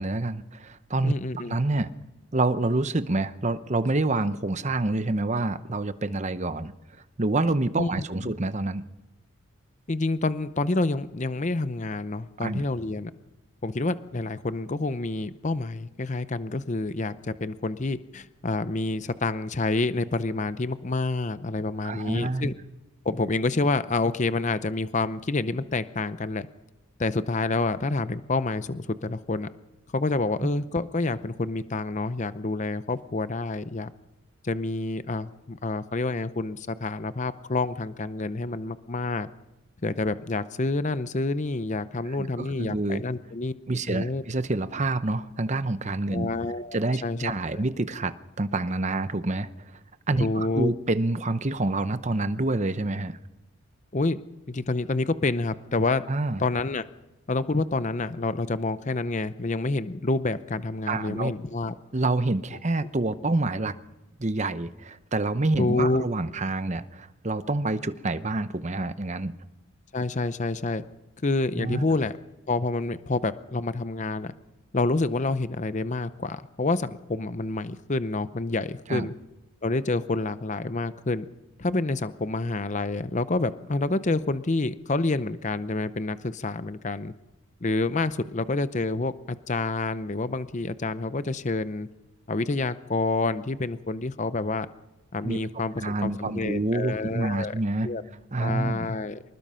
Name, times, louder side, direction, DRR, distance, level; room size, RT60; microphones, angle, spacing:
voice 1, 0.0-1.1 1.5-1.9 2.3-6.7 7.2-8.8 12.4-12.6 21.8-22.5 42.1-43.0 43.7-46.3 46.7-49.5 50.1-53.2 56.1-56.4 60.9-61.3 61.9-63.7 64.2-69.3 71.5-71.9 78.9-79.1 95.2-95.4 95.8-97.9 98.3-98.9, right 2 dB, 30° right, 12 dB, 0.8 m, -27 dB
voice 2, 1.0-1.6 7.8-8.0 9.9-13.1 13.6-22.5 23.0-26.5 27.0-29.5 29.9-33.9 34.4-39.3 39.8-43.5 43.9-44.2 46.1-46.8 47.0-47.6 50.2-50.7 53.9-54.2 54.5-56.0 56.4-56.8 57.3-61.7 65.6-66.0 69.9-70.8 71.2-72.1 72.5-74.3 74.7-79.1 79.6-81.3 81.6-87.1 87.6-91.9 92.3-94.7 95.1-97.5 97.8-98.0 98.4-99.2, left 2 dB, 35° left, 13 dB, 0.6 m, -28 dB
25.0 x 20.0 x 5.7 m, 1.1 s
head